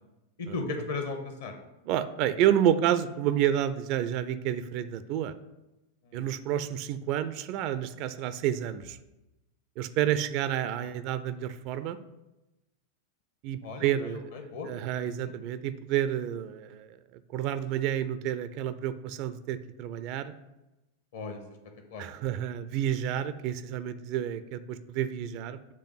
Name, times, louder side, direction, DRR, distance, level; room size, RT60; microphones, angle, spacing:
voice 1, 0.4-1.5 6.0-6.2 13.6-14.7 15.2-15.3 21.1-21.4 21.9-22.0, left 3 dB, 60° left, 6 dB, 1.0 m, -36 dB
voice 2, 1.8-5.3 6.1-9.0 9.8-12.0 13.4-14.3 14.7-17.0 17.3-20.3 22.0-25.6, right 10 dB, 45° right, 13 dB, 0.4 m, -29 dB
7.5 x 3.5 x 5.5 m, 0.99 s
figure-of-eight pair, 90°, 0 cm